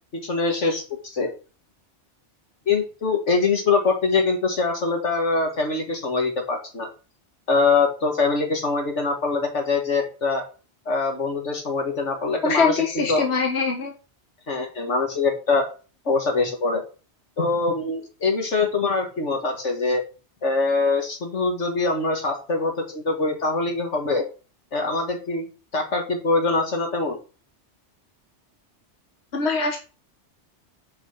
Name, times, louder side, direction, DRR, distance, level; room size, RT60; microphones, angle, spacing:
voice 1, 0.2-1.3 2.7-6.9 7.5-10.4 10.9-13.3 14.5-15.7 16.1-16.8 17.4-20.0 20.4-24.3 24.7-25.4 25.7-27.2, left 3 dB, 80° left, 3 dB, 2.3 m, -23 dB
voice 2, 12.4-13.9 29.3-29.8, left 4 dB, 65° left, 2 dB, 1.6 m, -22 dB
8.3 x 4.8 x 5.9 m, 0.35 s
omnidirectional pair, 1.2 m